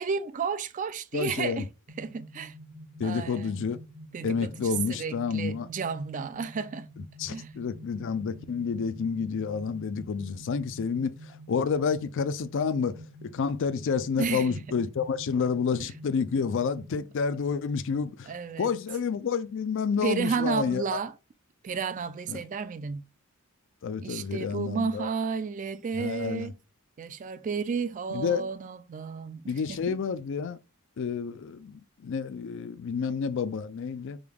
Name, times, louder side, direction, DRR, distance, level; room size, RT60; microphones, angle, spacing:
voice 1, 0.0-1.7 2.0-2.6 3.0-3.5 4.1-6.9 7.3-7.5 14.2-14.6 15.8-15.9 18.3-18.7 20.0-21.1 21.6-23.1 24.0-26.5 27.0-30.0, right 5 dB, 35° right, 0.3 m, -32 dB
voice 2, 1.1-1.6 3.0-3.8 4.2-5.7 7.2-18.3 18.6-21.0 22.3-22.4 23.8-25.1 25.9-26.5 28.1-28.5 29.5-30.6 31.0-34.2, left 5 dB, 55° left, 0.4 m, -29 dB
sound 1, 1.9-16.9, right 1 dB, 70° right, 1.1 m, -48 dB
5.0 x 2.3 x 3.4 m
head